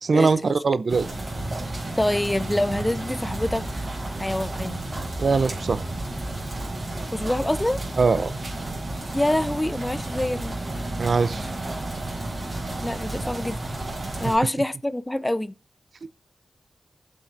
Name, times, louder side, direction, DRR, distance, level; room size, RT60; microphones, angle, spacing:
voice 1, 0.0-1.1 5.2-5.8 8.0-8.3 11.0-11.5, right 4 dB, 70° right, 0.6 m, -21 dB
sound 1, 0.9-14.4, right 2 dB, 50° right, 4.4 m, -32 dB
voice 2, 2.0-3.6 4.2-4.8 7.1-7.8 9.1-10.6 12.8-13.8 14.2-15.6, left 1 dB, 15° left, 0.6 m, -25 dB
20.0 x 7.5 x 2.6 m
cardioid pair, 55°, 0 cm